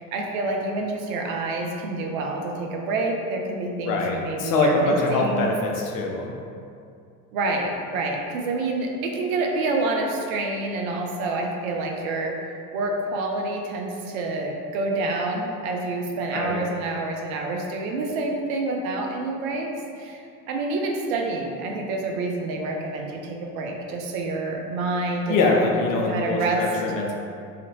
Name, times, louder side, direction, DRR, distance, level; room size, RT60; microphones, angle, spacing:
voice 1, 0.0-5.5 7.3-12.3 12.7-19.7 20.0-20.2 20.5-26.6, right 2 dB, 70° right, 1 dB, 0.6 m, -28 dB
voice 2, 3.9-6.4 16.3-16.6 25.3-27.2, left 3 dB, 50° left, 0 dB, 0.7 m, -23 dB
2.8 x 2.5 x 4.0 m, 2.4 s
hypercardioid pair, 70°, 43 cm